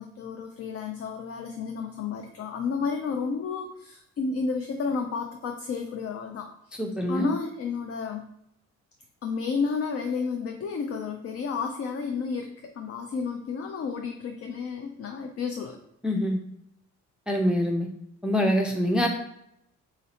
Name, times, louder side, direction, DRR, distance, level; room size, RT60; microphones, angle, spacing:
voice 1, 0.0-6.8 7.1-8.3 9.2-15.8, left 5 dB, 50° left, 5 dB, 0.5 m, -31 dB
voice 2, 6.8-7.3 16.0-16.4 17.3-17.9 18.2-19.1, equal, 5° right, 2 dB, 0.5 m, -24 dB
3.9 x 2.6 x 4.2 m, 0.77 s
cardioid pair, 90°, 30 cm